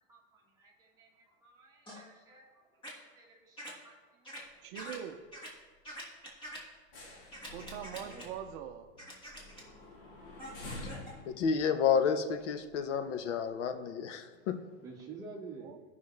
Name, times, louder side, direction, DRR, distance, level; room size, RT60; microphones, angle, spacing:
voice 1, 0.1-4.6 8.0-8.2 14.8-15.7, right 4 dB, 10° right, -4 dB, 1.5 m, -51 dB
sound 1, 1.9-2.0 2.8-2.9 3.6-3.7 4.2-4.4 4.7-5.0 5.3-5.5 5.8-6.6 7.3-8.2 9.0-9.6 10.4-11.1, equal, 15° left, 1.5 m, -45 dB
sound 2, 4.4-4.9 5.1-5.3 5.7-5.9 6.3-13.0 13.5-13.6, left 2 dB, 50° left, 2.5 m, -49 dB
voice 2, 4.6-5.2 7.5-8.9 15.6-15.8, right 9 dB, 45° right, 6 dB, 0.6 m, -42 dB
voice 3, 11.2-14.6, left 6 dB, 75° left, 9 dB, 0.9 m, -30 dB
16.0 x 5.6 x 3.2 m, 1.4 s
supercardioid pair, 165°, 36 cm